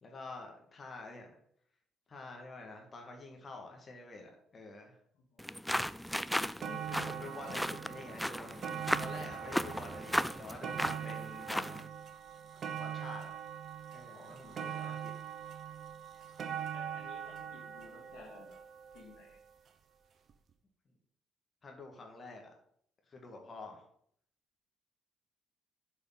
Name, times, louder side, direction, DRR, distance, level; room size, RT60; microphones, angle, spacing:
voice 1, 0.0-1.4 2.1-5.0 6.9-8.7 9.0-12.1 12.8-13.3 13.9-15.1 21.6-22.5 23.1-23.8, left 3 dB, 40° left, 1 dB, 1.8 m, -48 dB
voice 2, 5.1-5.4 6.3-7.6 14.1-15.0 16.7-18.6 18.9-19.4, left 4 dB, 65° left, -2 dB, 2.7 m, -54 dB
sound 1, 5.4-11.9, equal, 5° left, 0.3 m, -36 dB
sound 2, 5.9-6.0 6.3-19.5 20.3-20.4, right 8 dB, 50° right, 0.7 m, -42 dB
7.0 x 4.8 x 5.8 m, 0.65 s
figure-of-eight pair, 45°, 0 cm